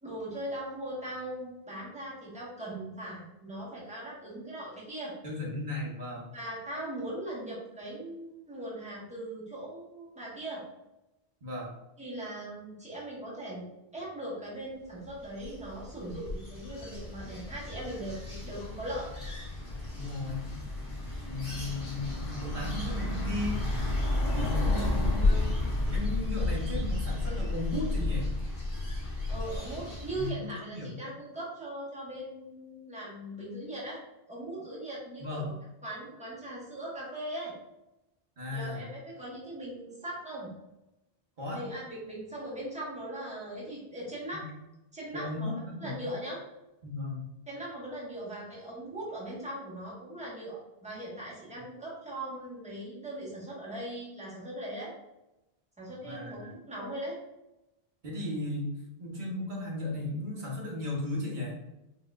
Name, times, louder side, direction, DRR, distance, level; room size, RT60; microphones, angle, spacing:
voice 1, 0.0-5.1 6.3-10.7 12.0-13.6 13.9-19.1 24.5-24.7 29.3-34.0 34.3-35.5 35.8-37.5 38.5-40.5 41.5-44.4 44.9-45.5 45.8-46.4 47.5-54.9 55.8-57.1, right 1 dB, 5° right, -7 dB, 1.2 m, -39 dB
voice 2, 5.2-6.3 11.4-11.7 20.0-20.6 21.3-23.6 24.3-25.5 25.9-28.3 30.2-30.9 35.2-35.5 38.4-38.8 41.4-41.6 45.1-46.0 46.8-47.2 56.0-56.5 58.0-58.7 59.0-61.5, left 2 dB, 50° right, -3 dB, 1.1 m, -35 dB
sound 1, 15.1-30.3, left 2 dB, 50° left, 1.7 m, -32 dB
4.6 x 3.0 x 2.4 m, 0.94 s
omnidirectional pair, 1.1 m